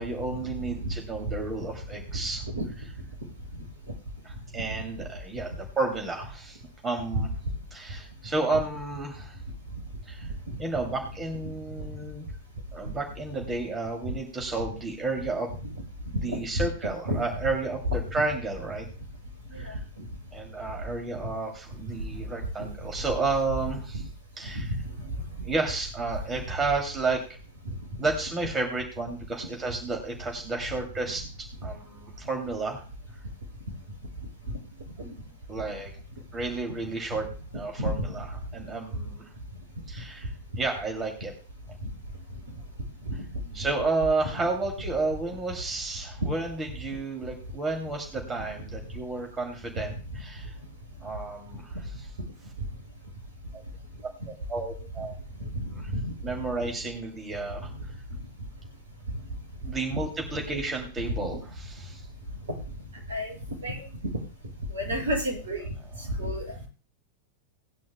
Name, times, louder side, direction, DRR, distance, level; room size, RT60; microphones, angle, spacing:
voice 1, 0.0-2.4 4.5-7.3 7.7-9.4 10.1-10.3 10.6-12.3 12.7-15.5 16.2-18.9 19.5-19.8 20.3-24.0 24.4-24.7 25.4-27.2 28.0-31.2 31.6-32.8 35.5-35.9 36.3-37.3 37.5-38.2 38.5-39.3 39.9-41.3 43.5-50.5 51.0-51.7 53.5-53.6 54.5-55.1 55.7-55.9 56.2-57.7 59.6-62.0, right 3 dB, 20° right, 2 dB, 2.7 m, -31 dB
voice 2, 64.7-65.6 66.2-66.5, equal, 70° right, 0 dB, 6.0 m, -30 dB
18.5 x 10.5 x 2.2 m, 0.37 s
figure-of-eight pair, 90°, 0 cm